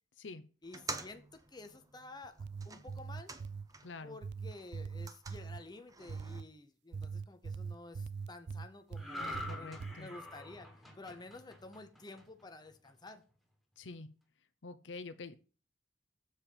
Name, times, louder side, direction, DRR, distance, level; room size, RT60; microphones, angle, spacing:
voice 1, 0.6-2.4 2.6-3.3 4.0-10.7 11.0-13.2, left 2 dB, 20° left, 0.8 m, -51 dB
sound 1, 0.6-4.1 4.4-6.4, right 3 dB, 20° right, 0.8 m, -48 dB
sound 2, 2.2-3.7 4.2-5.6 6.1-6.5 6.9-9.1 9.3-10.0, right 5 dB, 60° right, 0.4 m, -42 dB
voice 2, 3.8-4.2 9.2-10.1 13.8-14.1 14.6-15.3, left 3 dB, 70° left, 0.7 m, -47 dB
sound 3, 8.9-12.4 12.8-13.1, left 1 dB, ahead, 1.5 m, -45 dB
7.3 x 4.3 x 6.6 m
head